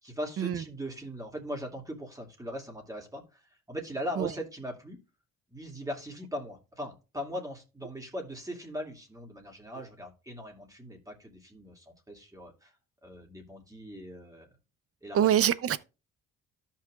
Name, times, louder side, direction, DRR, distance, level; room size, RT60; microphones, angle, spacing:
voice 1, 0.0-5.0 5.5-12.7 13.0-14.5 15.0-15.5, equal, 10° right, 2.4 m, -40 dB
voice 2, 15.1-15.8, right 10 dB, 50° right, 0.7 m, -24 dB
13.5 x 5.8 x 2.4 m
cardioid pair, 90°, 30 cm